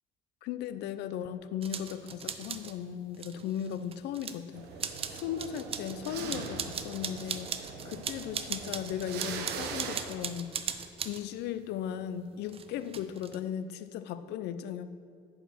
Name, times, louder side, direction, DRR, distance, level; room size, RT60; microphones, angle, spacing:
voice 1, 0.4-4.7 5.1-7.6 7.8-10.8 11.0-15.0, left 9 dB, 80° left, 12 dB, 0.5 m, -37 dB
sound 1, 1.6-2.8 3.1-4.4 4.8-11.2 12.5-13.4, right 7 dB, 35° right, 0.5 m, -39 dB
sound 2, 4.5-10.0, right 6 dB, 80° right, 0.8 m, -41 dB
10.0 x 4.8 x 5.0 m, 2.2 s
cardioid pair, 110°, 17 cm